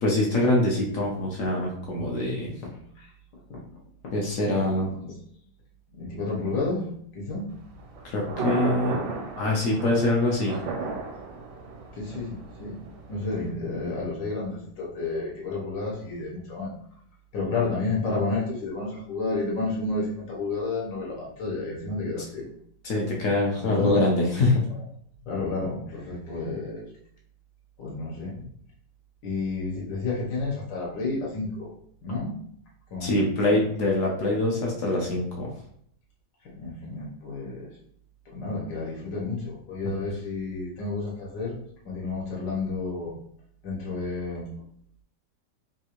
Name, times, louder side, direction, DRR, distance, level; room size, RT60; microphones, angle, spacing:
voice 1, 0.0-2.5 4.1-4.9 8.0-9.0 9.4-10.6 22.8-24.6 33.0-35.5 39.8-39.9, left 2 dB, 65° left, -2 dB, 0.9 m, -24 dB
voice 2, 2.7-3.1 4.8-5.1 5.9-6.9 7.1-7.5 11.9-12.8 13.1-16.7 17.3-22.5 23.6-23.9 25.3-26.8 27.8-28.3 29.2-31.7 32.0-32.3 32.9-33.3 36.5-37.7 38.3-41.6 41.8-43.1 43.6-44.5, left 3 dB, 80° left, -4 dB, 1.5 m, -31 dB
Thunder, 7.5-13.5, right 3 dB, 80° right, 1.2 m, -34 dB
3.5 x 2.4 x 2.9 m, 0.65 s
omnidirectional pair, 1.9 m